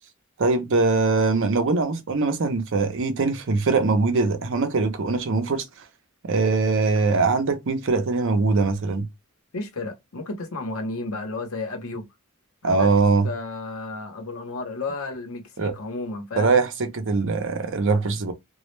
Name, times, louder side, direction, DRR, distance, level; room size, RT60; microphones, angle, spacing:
voice 1, 0.4-5.6 6.2-9.1 12.6-13.3 15.6-15.7 16.4-18.3, right 3 dB, 65° right, 0.6 m, -22 dB
voice 2, 9.5-12.0 12.6-12.9 13.2-16.6, left 3 dB, 80° left, 0.8 m, -32 dB
2.2 x 2.0 x 3.1 m
head